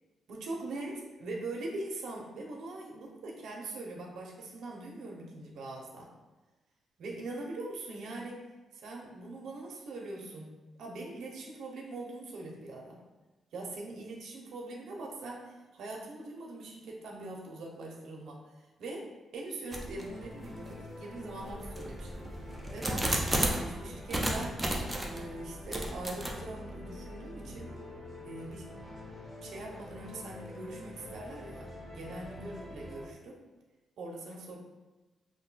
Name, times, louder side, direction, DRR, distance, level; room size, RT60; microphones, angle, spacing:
voice 1, 0.3-6.1 7.0-8.4 8.7-13.0 13.5-22.3 22.7-23.1 23.6-24.6 25.1-27.7 28.2-28.7 29.4-33.4 34.0-34.6, right 2 dB, 70° right, -1 dB, 0.6 m, -42 dB
sound 1, 19.7-20.1 20.7-20.8 21.4-23.7 24.1-25.2 25.7-26.3, right 1 dB, 10° right, 0.3 m, -32 dB
sound 2, 20.0-33.1, left 1 dB, 20° left, 0.9 m, -46 dB
2.5 x 2.2 x 3.9 m, 1.2 s
wide cardioid pair, 155°, 0 cm